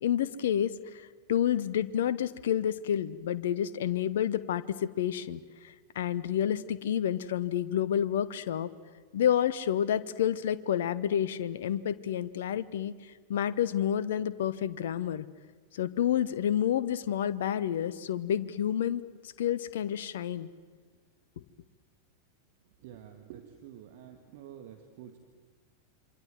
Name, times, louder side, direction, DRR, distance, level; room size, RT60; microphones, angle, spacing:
voice 1, 0.0-8.7 9.1-15.3 15.7-19.0 19.4-20.5 21.4-21.5, left 10 dB, 60° left, 16 dB, 0.9 m, -29 dB
voice 2, 22.8-25.2, right 10 dB, 50° right, 5 dB, 2.0 m, -48 dB
27.5 x 24.5 x 7.7 m, 1.5 s
figure-of-eight pair, 90°, 0 cm